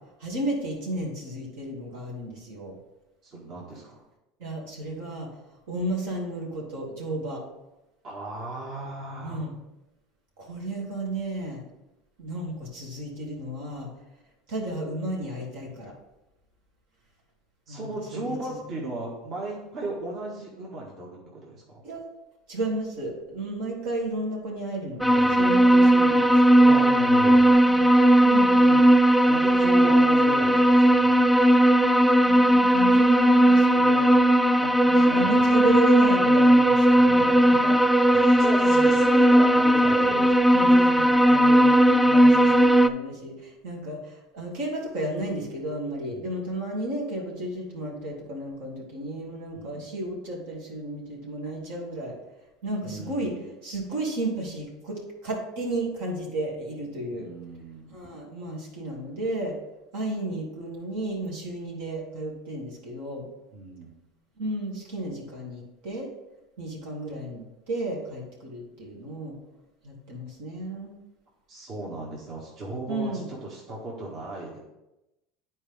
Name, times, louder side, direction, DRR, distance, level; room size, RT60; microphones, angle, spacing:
voice 1, 0.2-2.8 4.4-5.3 5.7-7.4 9.2-9.5 10.4-11.6 12.2-13.9 14.5-15.9 17.7-18.6 21.8-22.0 22.5-26.8 27.4-27.9 28.2-28.9 29.7-30.0 32.2-34.1 34.8-37.2 37.6-37.8 38.6-38.9 40.5-52.1 52.6-53.3 53.6-57.3 57.9-59.6 59.9-63.2 64.4-66.1 66.6-69.4 69.8-71.0 72.9-73.3, right 1 dB, 75° right, -2 dB, 2.3 m, -33 dB
voice 2, 3.2-4.0 8.0-9.5 17.7-21.8 25.0-25.6 26.6-27.5 29.2-31.1 34.6-35.7 37.1-37.8 38.1-40.6 46.0-46.4 49.5-49.9 52.8-53.4 57.1-57.9 63.5-64.0 71.5-74.6, right 2 dB, 45° right, -3 dB, 1.7 m, -36 dB
sound 1, 25.0-42.9, right 1 dB, ahead, 0.4 m, -18 dB
9.7 x 4.4 x 3.6 m, 0.95 s
hypercardioid pair, 95°, 0 cm